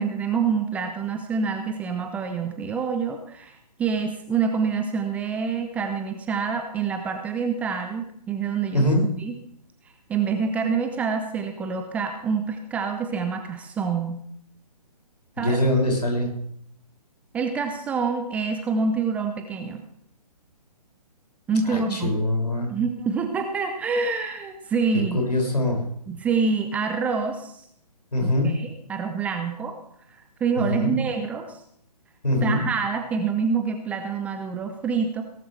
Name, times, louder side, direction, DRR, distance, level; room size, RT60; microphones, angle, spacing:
voice 1, 0.0-8.8 9.2-9.3 10.1-14.2 15.4-15.6 17.3-19.8 21.5-22.2 22.7-25.2 26.1-27.6 28.2-29.8 30.4-31.6 32.4-35.2, right 5 dB, 5° right, 6 dB, 0.6 m, -26 dB
voice 2, 15.4-16.3 21.7-22.7 25.1-25.8 28.1-28.5 30.6-30.9 32.2-32.6, left 1 dB, 75° left, 0 dB, 6.1 m, -23 dB
17.5 x 13.5 x 3.3 m, 0.69 s
figure-of-eight pair, 135°, 21 cm